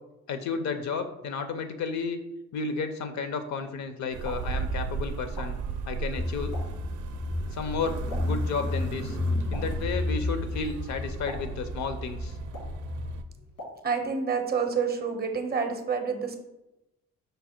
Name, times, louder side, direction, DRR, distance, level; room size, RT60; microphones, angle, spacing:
voice 1, 0.3-2.2 2.5-5.6 5.9-6.5 7.5-9.2 9.5-12.4, left 4 dB, 65° left, 9 dB, 0.6 m, -32 dB
Explosion, 4.0-14.3, left 1 dB, 90° left, 1.4 m, -48 dB
sound 1, 4.1-13.2, right 5 dB, 75° right, 0.5 m, -36 dB
Car / Engine, 6.2-13.2, left 2 dB, 10° left, 0.3 m, -32 dB
voice 2, 13.8-16.4, right 5 dB, 30° right, 6 dB, 0.6 m, -28 dB
5.2 x 2.1 x 4.3 m, 0.92 s
cardioid pair, 90°, 30 cm